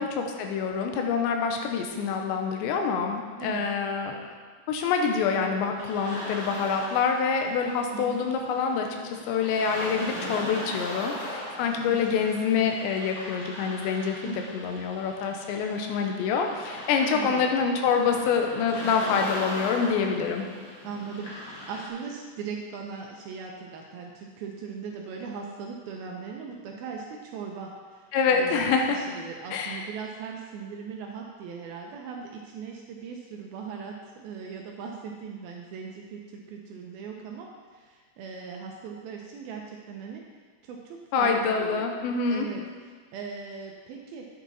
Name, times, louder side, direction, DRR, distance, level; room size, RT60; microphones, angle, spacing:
voice 1, 0.0-4.3 4.7-8.9 9.3-20.5 28.1-29.0 29.5-29.8 41.1-42.5, left 5 dB, 85° left, 3 dB, 3.1 m, -26 dB
sound 1, 5.8-21.9, left 1 dB, 45° left, 1.7 m, -39 dB
voice 2, 11.6-12.3 14.2-14.4 17.1-17.4 20.8-40.2 40.6-41.9 42.3-42.6 43.1-44.3, right 5 dB, 75° right, 0 dB, 2.3 m, -39 dB
9.7 x 8.4 x 4.1 m, 1.5 s
omnidirectional pair, 5.0 m